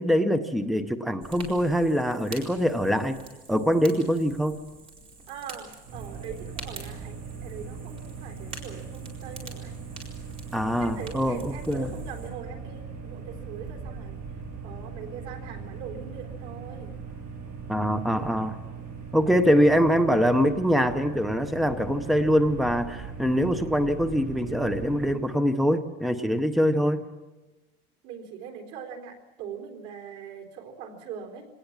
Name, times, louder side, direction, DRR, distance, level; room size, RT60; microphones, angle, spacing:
voice 1, 0.0-3.2 3.5-4.6 10.5-11.9 17.7-18.5 19.1-27.0, equal, ahead, 9 dB, 0.7 m, -24 dB
Fire, 1.2-12.3, right 3 dB, 35° right, 4.4 m, -46 dB
voice 2, 5.3-9.8 10.8-14.2 14.6-17.0 28.0-31.5, right 7 dB, 85° right, 3 dB, 4.1 m, -42 dB
sound 1, 5.9-25.1, right 5 dB, 55° right, 7.3 m, -39 dB
24.5 x 18.5 x 7.3 m, 1.2 s
cardioid pair, 170°, 18 cm